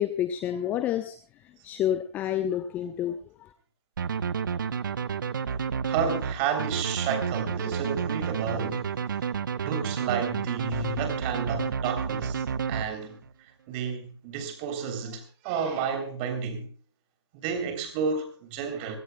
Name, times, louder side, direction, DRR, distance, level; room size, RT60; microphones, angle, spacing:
voice 1, 0.0-3.5, left 10 dB, 10° left, 0.8 m, -29 dB
sound 1, 4.0-13.3, right 6 dB, 50° right, 1.0 m, -30 dB
voice 2, 5.9-8.9 9.5-13.2 13.7-16.7 17.3-19.0, right 6 dB, 20° right, 3.4 m, -31 dB
24.5 x 17.5 x 2.3 m
figure-of-eight pair, 150°, 14 cm